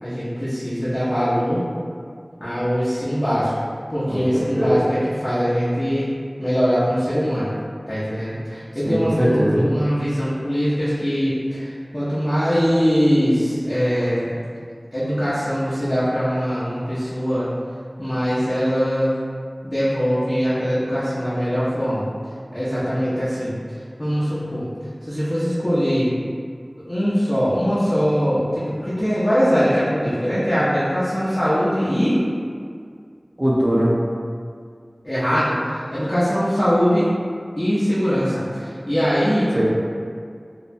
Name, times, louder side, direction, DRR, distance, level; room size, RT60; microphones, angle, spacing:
voice 1, 0.0-1.6 2.4-3.5 3.9-6.1 6.4-7.5 7.9-14.3 14.9-17.5 18.0-19.1 19.6-22.1 22.5-23.5 24.0-24.6 25.1-26.1 26.9-32.2 35.0-37.1 37.6-39.5, equal, 25° left, -12 dB, 0.6 m, -21 dB
voice 2, 4.1-4.9 8.8-9.7 33.4-33.9 39.5-39.7, equal, 30° right, -6 dB, 0.5 m, -20 dB
2.7 x 2.1 x 2.6 m, 2.2 s
wide cardioid pair, 45°, 0 cm